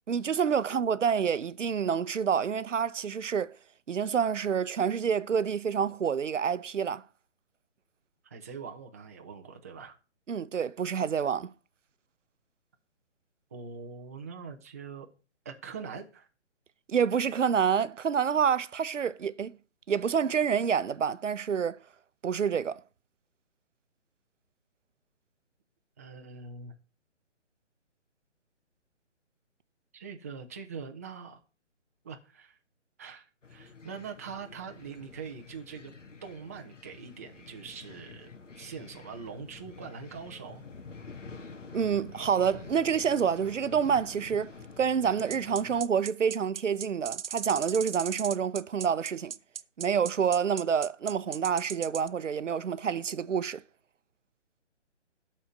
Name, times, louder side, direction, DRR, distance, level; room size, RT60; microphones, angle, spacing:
voice 1, 0.1-3.5 3.9-7.0 10.3-11.5 16.9-19.5 19.9-21.8 22.2-22.8 41.7-49.3 49.8-53.6, right 7 dB, 85° right, 0.8 m, -28 dB
voice 2, 8.2-10.0 13.5-15.1 15.4-16.3 26.0-26.8 29.9-31.4 32.0-32.6 33.0-35.9 36.2-40.6, right 5 dB, 15° right, 0.5 m, -43 dB
sound 1, 33.4-45.8, left 4 dB, 85° left, 1.8 m, -48 dB
sound 2, 45.3-52.1, right 8 dB, 55° right, 0.6 m, -38 dB
12.0 x 4.3 x 7.6 m
hypercardioid pair, 155°, 36 cm